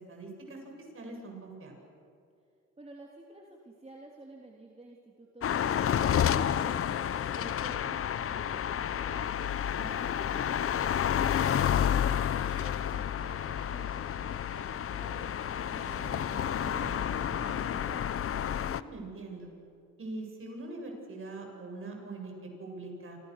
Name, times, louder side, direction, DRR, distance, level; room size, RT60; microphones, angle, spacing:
voice 1, 0.1-0.6 0.9-1.7 9.8-10.1 18.6-19.5 20.0-23.2, right 2 dB, 45° right, 1 dB, 7.9 m, -42 dB
voice 2, 2.8-7.0 7.3-9.4 9.8-16.2 16.6-18.1, right 2 dB, 20° right, -1 dB, 3.4 m, -51 dB
sound 1, 5.4-18.8, left 9 dB, 45° left, 0.8 m, -30 dB
sound 2, 9.7-17.7, right 3 dB, 75° right, 6.9 m, -52 dB
29.0 x 26.0 x 6.8 m, 2.4 s
cardioid pair, 90°, 30 cm